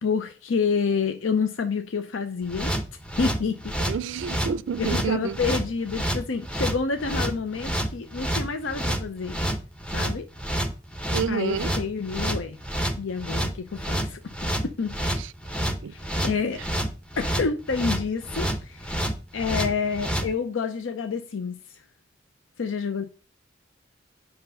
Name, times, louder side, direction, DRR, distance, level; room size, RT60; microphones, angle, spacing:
voice 1, 0.0-2.7 3.2-3.7 4.8-9.4 9.9-10.3 11.3-12.6 13.0-14.2 14.6-15.2 15.9-16.6 17.2-19.0 19.3-21.6 22.6-23.0, left 5 dB, 85° left, 0.6 m, -28 dB
sound 1, 2.5-20.3, right 1 dB, 5° left, 0.7 m, -28 dB
voice 2, 3.9-5.4 11.1-11.7 15.2-15.3 15.8-15.9, right 7 dB, 70° right, 0.4 m, -29 dB
5.3 x 4.6 x 5.4 m
head